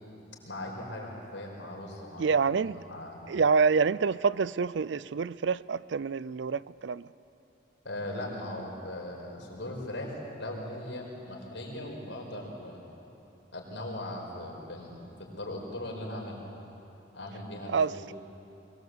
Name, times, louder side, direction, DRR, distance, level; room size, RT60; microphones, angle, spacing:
voice 1, 0.4-3.2 7.8-12.8 13.5-16.5 17.1-18.1, left 1 dB, 80° left, -1 dB, 5.1 m, -39 dB
voice 2, 2.2-2.8 3.3-7.1 17.7-18.1, right 5 dB, 70° right, 19 dB, 0.4 m, -27 dB
23.0 x 21.0 x 8.1 m, 3.0 s
head